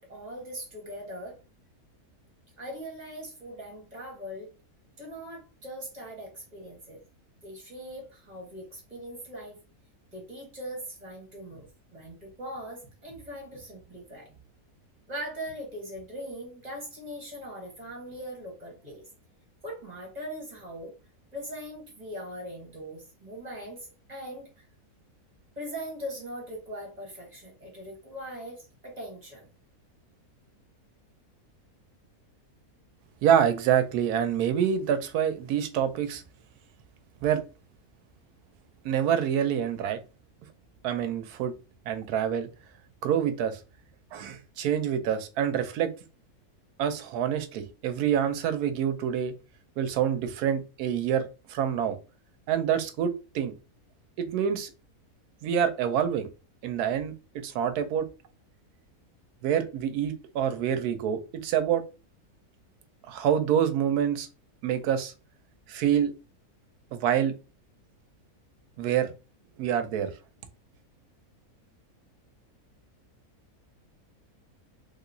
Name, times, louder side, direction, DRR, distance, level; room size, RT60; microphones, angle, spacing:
voice 1, 0.0-1.4 2.6-4.5 5.0-7.0 7.4-9.6 10.1-14.3 15.1-19.1 19.6-20.9 21.3-24.6 25.5-29.5, equal, 30° right, 1.2 m, -40 dB
voice 2, 33.2-36.2 37.2-37.4 38.8-40.0 40.8-41.5 41.9-42.5 43.0-43.6 44.1-45.9 46.8-49.3 49.8-52.0 52.5-53.5 54.2-54.7 55.4-56.3 56.6-58.1 59.4-61.8 63.1-64.3 64.6-65.1 65.7-66.1 66.9-67.3 68.8-69.1 69.6-70.1, right 9 dB, 80° right, 1.1 m, -26 dB
3.4 x 2.9 x 2.6 m
omnidirectional pair, 1.6 m